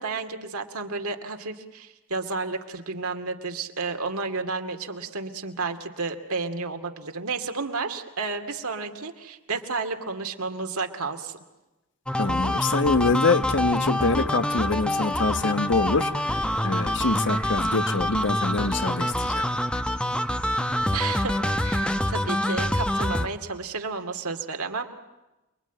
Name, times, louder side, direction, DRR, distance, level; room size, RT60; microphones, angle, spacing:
voice 1, 0.0-11.4 20.9-24.8, right 4 dB, 70° right, 2.4 m, -32 dB
sound 1, 12.1-23.3, left 1 dB, 5° left, 1.0 m, -26 dB
voice 2, 12.2-19.5, left 3 dB, 55° left, 1.2 m, -25 dB
28.5 x 22.5 x 9.2 m
head